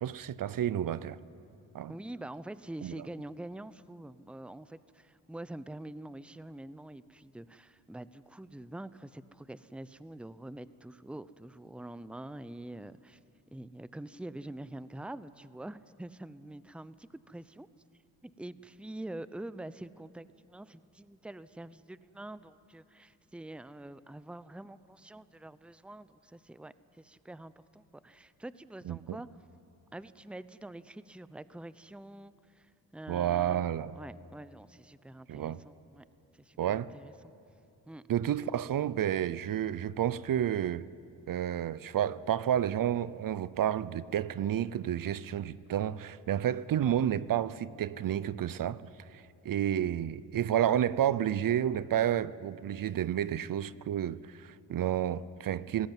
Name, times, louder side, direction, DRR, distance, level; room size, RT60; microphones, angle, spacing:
voice 1, 0.0-1.2 1.7-1.9 2.8-2.9 28.9-29.0 33.1-34.0 35.3-35.6 36.6-36.9 38.1-40.9 41.3-48.8 49.4-55.9, right 10 dB, 60° right, 0.7 m, -30 dB
voice 2, 1.9-13.2 13.5-17.7 18.2-29.3 29.9-33.6 33.9-36.0 36.3-37.3 37.9-38.0, right 1 dB, 5° right, 0.8 m, -45 dB
19.0 x 17.0 x 9.2 m
supercardioid pair, 60°, 39 cm